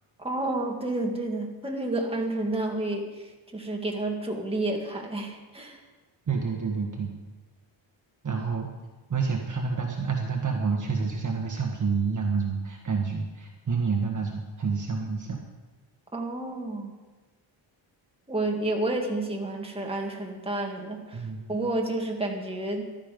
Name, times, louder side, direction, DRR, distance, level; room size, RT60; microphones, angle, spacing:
voice 1, 0.2-5.8 16.1-16.9 18.3-22.8, right 2 dB, 10° right, 0 dB, 2.1 m, -30 dB
voice 2, 6.3-7.1 8.2-8.7 9.1-15.4 21.1-21.5, right 5 dB, 40° right, 1 dB, 1.4 m, -28 dB
14.5 x 12.0 x 5.3 m, 1.2 s
wide cardioid pair, 130°, 48 cm